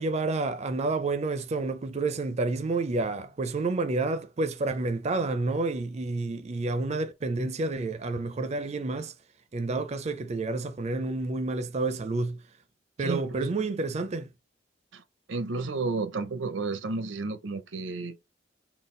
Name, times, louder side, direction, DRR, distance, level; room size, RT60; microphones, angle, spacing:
voice 1, 0.0-9.1 9.5-12.4 13.0-14.3, right 3 dB, 35° right, 0.4 m, -29 dB
voice 2, 13.0-13.5 14.9-15.0 15.3-18.2, right 3 dB, 90° right, 0.7 m, -32 dB
3.9 x 2.3 x 3.7 m
head